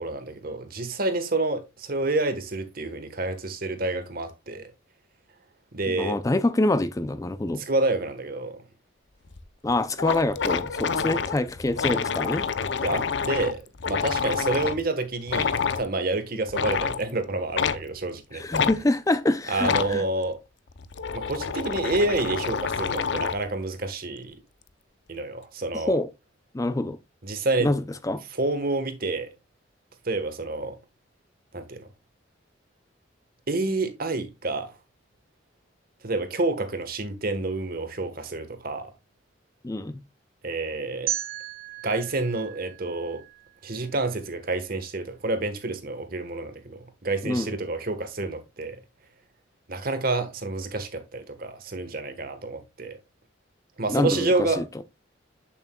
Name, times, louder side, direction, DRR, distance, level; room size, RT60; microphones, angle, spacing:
voice 1, 0.0-4.6 5.7-6.2 7.6-8.6 12.8-18.7 19.5-20.4 21.1-24.4 25.1-26.0 27.2-27.7 28.3-29.3 30.0-30.8 31.5-31.9 33.5-34.7 36.0-38.9 40.4-41.1 41.8-43.2 43.6-48.8 49.7-53.0 53.8-54.6, right 2 dB, 50° right, 1.3 m, -28 dB
voice 2, 5.9-7.6 9.6-12.5 18.3-20.0 25.7-26.1 26.5-27.0 27.6-28.2 39.6-40.0 47.2-47.5 53.9-54.6, left 2 dB, 20° left, 0.4 m, -26 dB
sound 1, 9.3-9.4 9.7-9.8 10.0-14.8 15.3-15.8 16.5-17.0 17.5-17.8 18.5-18.8 19.6-19.9 20.7-23.5, left 6 dB, 65° left, 0.6 m, -27 dB
sound 2, 41.1-44.0, right 11 dB, 90° right, 2.6 m, -35 dB
8.2 x 7.2 x 2.3 m
head